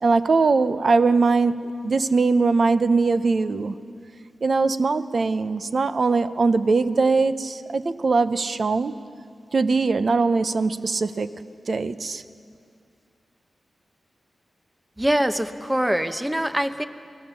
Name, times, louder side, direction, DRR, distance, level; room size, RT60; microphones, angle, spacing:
voice 1, 0.0-3.8 4.4-9.0 9.5-11.3 11.7-12.2, right 4 dB, 50° right, 12 dB, 0.8 m, -21 dB
voice 2, 15.0-16.9, right 1 dB, 10° right, 9 dB, 0.9 m, -23 dB
28.0 x 18.5 x 7.1 m, 2.3 s
wide cardioid pair, 125°, 0 cm